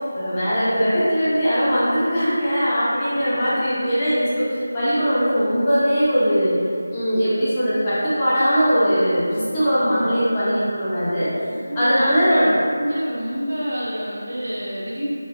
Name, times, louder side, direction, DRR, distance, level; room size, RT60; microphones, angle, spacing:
voice 1, 0.1-6.6 6.9-11.3 11.7-12.5, equal, 20° left, -14 dB, 0.8 m, -20 dB
voice 2, 11.5-12.4 12.8-15.1, equal, 65° right, -8 dB, 0.9 m, -27 dB
3.3 x 2.2 x 2.2 m, 2.4 s
figure-of-eight pair, 165°, 0 cm